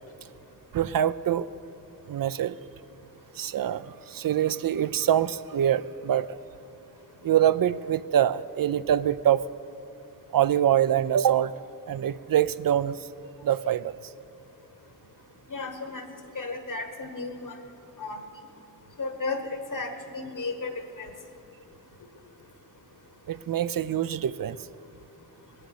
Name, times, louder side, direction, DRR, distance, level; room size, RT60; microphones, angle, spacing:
voice 1, 0.7-1.5 2.1-2.6 3.4-6.4 7.2-9.4 10.3-11.5 11.9-13.1 13.4-14.0 23.3-24.6, right 10 dB, 75° right, 15 dB, 0.5 m, -24 dB
voice 2, 15.5-16.1 16.3-17.5 18.0-18.2 19.0-19.4 19.7-20.7 21.0-21.1, left 3 dB, 60° left, 7 dB, 1.5 m, -33 dB
19.0 x 7.6 x 8.5 m, 2.7 s
wide cardioid pair, 65°, 35 cm